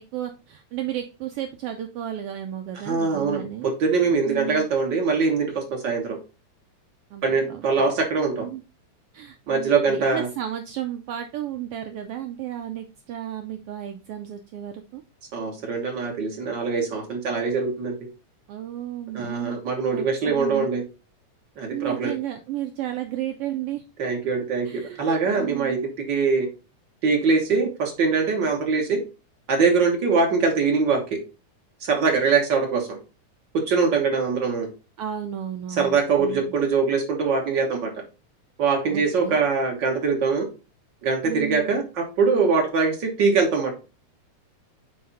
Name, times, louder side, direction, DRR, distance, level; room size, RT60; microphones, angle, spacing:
voice 1, 0.0-3.7 4.3-4.7 7.1-7.8 8.4-8.6 9.1-15.0 18.5-19.6 19.9-20.7 21.7-23.8 24.1-24.2 24.6-25.9 35.0-36.5 38.9-39.4 41.2-41.7, right 11 dB, 85° right, 5 dB, 1.3 m, -33 dB
voice 2, 2.8-6.2 7.2-8.5 9.5-10.3 15.3-18.0 19.1-20.8 21.6-22.1 24.0-25.8 26.1-26.5 27.0-29.0 29.5-31.2 31.8-33.0 33.5-34.7 35.8-37.9 38.6-40.5 41.0-43.7, right 4 dB, 50° right, 2 dB, 1.6 m, -23 dB
8.6 x 3.4 x 4.0 m, 0.31 s
omnidirectional pair, 3.3 m